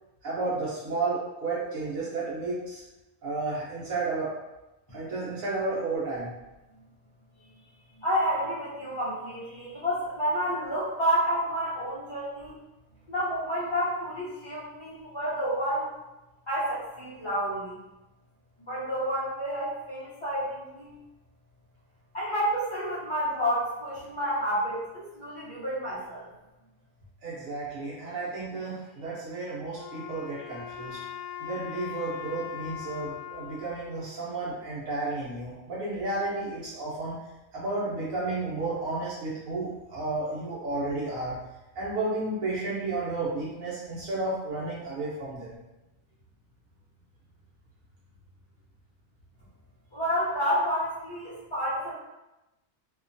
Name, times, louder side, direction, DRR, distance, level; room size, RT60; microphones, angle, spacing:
voice 1, 0.2-2.8 3.2-4.3 4.9-6.3 27.2-31.0 31.4-37.2 37.5-41.3 41.7-45.6, right 3 dB, 80° right, -9 dB, 1.2 m, -32 dB
voice 2, 8.0-12.6 13.1-15.9 16.5-17.8 18.6-20.9 22.1-26.3 49.9-51.9, equal, 35° left, -12 dB, 0.5 m, -29 dB
Wind instrument woodwind instrument, 29.7-34.9, left 10 dB, 65° left, 0.7 m, -41 dB
2.9 x 2.2 x 2.5 m, 1.0 s
omnidirectional pair, 1.4 m